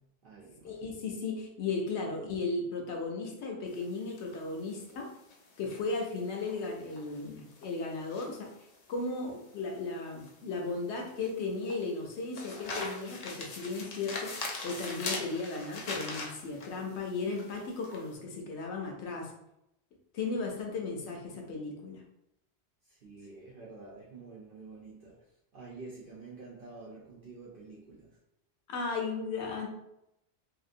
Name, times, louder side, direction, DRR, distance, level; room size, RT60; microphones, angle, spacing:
voice 1, 0.0-0.8 22.8-28.2, right 3 dB, 60° right, -6 dB, 0.7 m, -49 dB
voice 2, 0.6-5.1 5.6-8.5 8.9-19.3 20.1-22.0 28.7-29.7, left 3 dB, 90° left, 1 dB, 0.9 m, -35 dB
sound 1, 3.7-18.1, left 2 dB, 55° left, 0.5 m, -42 dB
2.8 x 2.6 x 2.5 m, 0.83 s
omnidirectional pair, 1.1 m